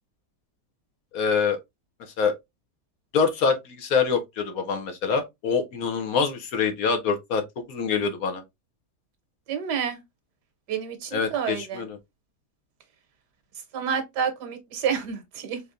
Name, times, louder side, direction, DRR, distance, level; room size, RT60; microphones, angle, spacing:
voice 1, 1.1-1.6 2.2-2.3 3.1-7.4 7.7-8.4 11.1-12.0, left 5 dB, 65° left, 1.1 m, -25 dB
voice 2, 9.5-10.0 10.7-11.8 13.7-15.6, right 7 dB, 80° right, 1.6 m, -29 dB
4.6 x 3.3 x 2.5 m
omnidirectional pair, 1.8 m